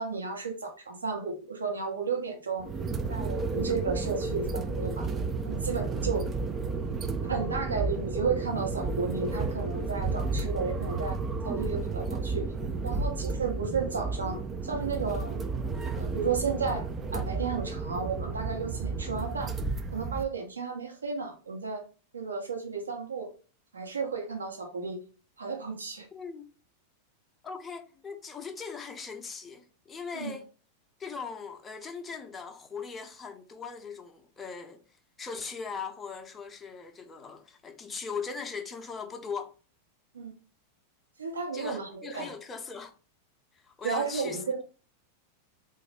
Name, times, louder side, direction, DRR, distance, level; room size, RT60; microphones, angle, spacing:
voice 1, 0.0-2.7 3.1-5.1 5.4-6.3 7.2-11.2 11.4-12.5 12.8-15.4 15.9-19.5 19.9-21.8 22.1-23.3 23.7-25.0 25.4-26.1 30.1-30.4 40.1-40.3 41.2-42.3 43.8-44.6, right 5 dB, 75° right, 1.0 m, -33 dB
sound 1, 2.6-20.2, right 4 dB, 20° right, 0.4 m, -32 dB
voice 2, 26.1-26.5 27.4-30.5 31.0-34.8 35.2-39.5 41.5-42.9 43.6-44.6, left 5 dB, 15° left, 0.6 m, -39 dB
3.9 x 2.4 x 3.4 m
figure-of-eight pair, 90°, 0 cm